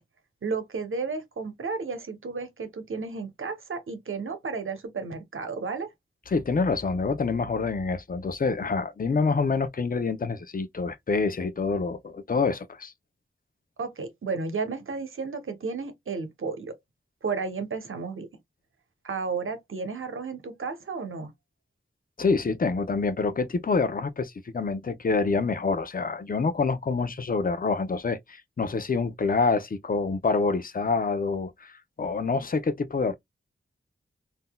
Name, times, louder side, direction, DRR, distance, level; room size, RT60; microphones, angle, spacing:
voice 1, 0.4-5.9 13.8-16.7 17.2-18.3 19.0-21.3, right 4 dB, 75° right, 0.9 m, -33 dB
voice 2, 6.3-12.9 22.2-33.1, left 4 dB, 45° left, 0.6 m, -27 dB
3.7 x 2.7 x 2.2 m
cardioid pair, 45°, 21 cm